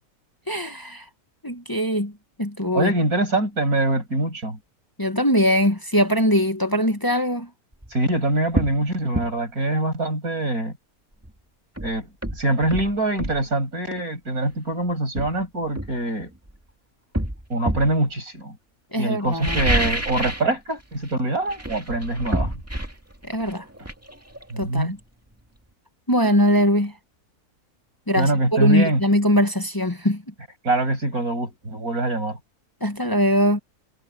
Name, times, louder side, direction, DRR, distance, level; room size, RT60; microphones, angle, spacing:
voice 1, 0.5-1.0 1.4-2.1 2.4-2.9 5.0-7.5 18.9-19.6 23.2-23.6 24.6-24.9 26.1-26.9 28.1-30.2 32.8-33.6, equal, 15° left, 1.1 m, -21 dB
voice 2, 2.7-4.6 7.9-10.7 11.8-12.1 12.3-16.3 17.5-18.6 19.0-22.5 24.5-25.0 28.1-29.0 30.6-32.4, right 2 dB, 70° right, 6.7 m, -24 dB
sound 1, 7.7-7.9 8.5-8.8 9.1-9.3 11.2-11.3 11.8-13.4 14.5-14.6 15.2-16.6 17.1-18.0 19.2-20.5 20.8-21.1 21.5-25.0 25.3-25.4, right 1 dB, 10° right, 2.1 m, -28 dB
omnidirectional pair, 1.6 m